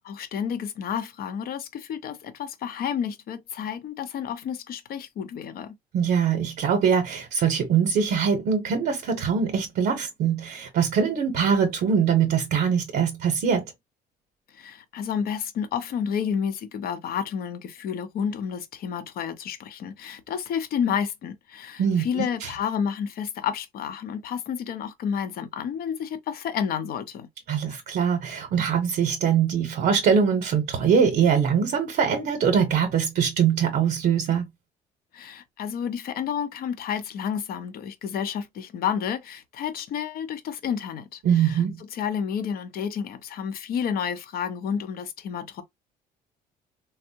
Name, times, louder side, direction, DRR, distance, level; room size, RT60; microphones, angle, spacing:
voice 1, 0.0-5.7 14.5-27.3 35.1-45.6, left 7 dB, 60° left, 0.6 m, -30 dB
voice 2, 5.9-13.7 21.8-22.5 27.5-34.5 41.2-41.7, right 7 dB, 65° right, 0.7 m, -23 dB
3.4 x 2.0 x 2.7 m
cardioid pair, 110°, 17 cm